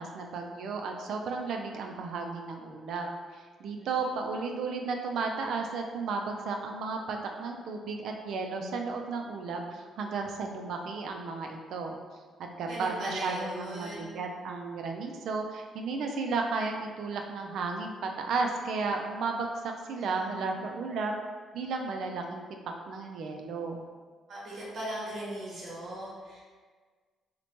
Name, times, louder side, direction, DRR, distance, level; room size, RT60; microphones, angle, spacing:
voice 1, 0.0-3.1 3.3-12.0 12.6-21.1 21.5-22.4 22.9-23.8, right 4 dB, 75° right, 3 dB, 0.3 m, -34 dB
voice 2, 12.7-14.1 19.9-20.9 24.3-26.4, right 1 dB, 55° right, -6 dB, 0.9 m, -39 dB
2.8 x 2.1 x 2.8 m, 1.5 s
cardioid pair, 90°, 0 cm